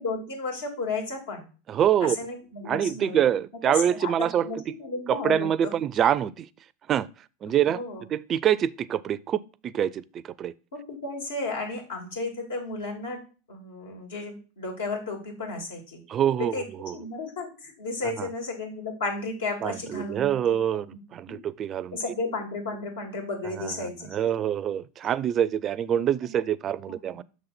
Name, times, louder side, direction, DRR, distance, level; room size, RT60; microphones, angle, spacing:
voice 1, 0.0-1.5 2.0-3.2 3.7-5.7 7.6-8.0 10.7-13.2 13.5-16.0 16.4-16.6 16.9-20.4 20.7-20.8 21.3-21.4 21.9-24.3 26.2-26.4 26.9-27.2, left 3 dB, 85° left, 2.8 m, -33 dB
voice 2, 1.7-2.2 2.7-4.5 5.1-6.5 6.9-7.1 7.4-7.8 8.1-10.5 16.1-16.5 16.8-17.0 18.0-18.3 19.6-20.9 21.1-22.0 23.5-27.2, right 10 dB, 35° right, 0.4 m, -25 dB
6.3 x 4.1 x 5.8 m
hypercardioid pair, 105°, 0 cm